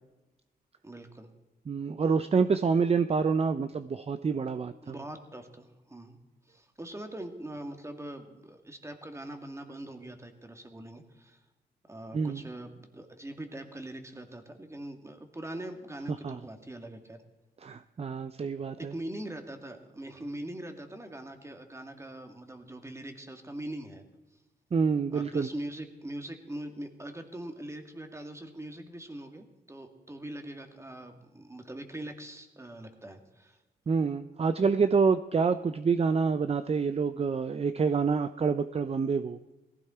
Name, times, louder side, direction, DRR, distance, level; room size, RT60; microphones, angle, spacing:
voice 1, 0.8-1.3 4.8-6.2 6.5-11.4 11.9-17.2 18.8-24.1 25.1-33.6, right 1 dB, 15° right, 5 dB, 2.2 m, -42 dB
voice 2, 1.7-4.7 12.1-12.4 16.2-16.4 17.6-18.9 24.7-25.5 33.9-39.4, right 5 dB, 40° right, 12 dB, 0.6 m, -27 dB
17.5 x 15.5 x 4.4 m, 1.1 s
cardioid pair, 85°, 17 cm